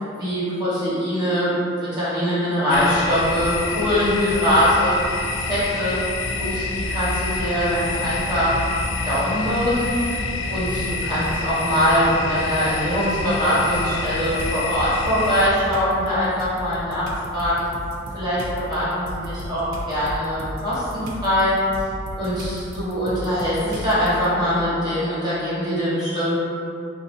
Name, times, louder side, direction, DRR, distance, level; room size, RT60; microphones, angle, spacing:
voice 1, 0.2-5.0 5.4-6.0 6.3-8.7 9.0-10.2 10.5-17.1 17.3-17.6 18.1-21.6 22.2-26.4, equal, 20° right, -11 dB, 1.1 m, -22 dB
sound 1, 2.7-15.5, left 3 dB, 70° left, 0.3 m, -27 dB
sound 2, 13.7-14.6 15.1-24.3, equal, 90° right, 0.5 m, -35 dB
4.0 x 2.6 x 2.6 m, 2.6 s
head